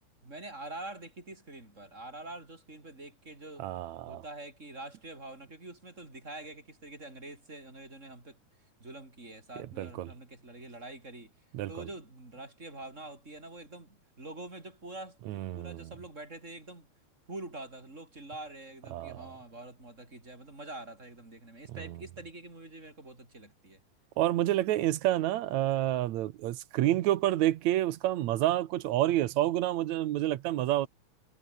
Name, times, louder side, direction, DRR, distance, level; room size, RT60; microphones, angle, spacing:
voice 1, 0.2-3.7 4.1-8.4 8.8-11.3 11.7-16.9 17.3-23.8, right 2 dB, 25° right, 4.9 m, -45 dB
voice 2, 3.6-4.2 9.6-10.1 11.5-11.9 15.3-15.9 18.9-19.3 21.8-22.0 24.2-30.9, right 14 dB, 75° right, 2.3 m, -29 dB
omnidirectional pair, 3.3 m